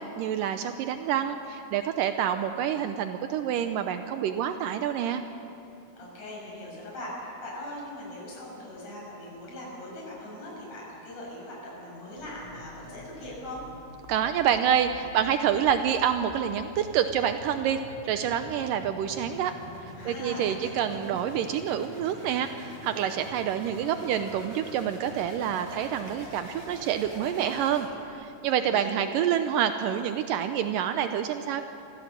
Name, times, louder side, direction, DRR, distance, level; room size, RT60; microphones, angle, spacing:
voice 1, 0.0-5.2 14.1-17.8 18.0-19.5 19.8-31.6, right 9 dB, 90° right, 8 dB, 1.9 m, -27 dB
voice 2, 6.0-13.6 20.0-21.0 28.6-29.0, left 1 dB, 40° left, -4 dB, 7.5 m, -40 dB
sound 1, 12.2-28.3, left 1 dB, 15° left, 5.9 m, -46 dB
25.0 x 16.0 x 7.6 m, 2.8 s
omnidirectional pair, 4.7 m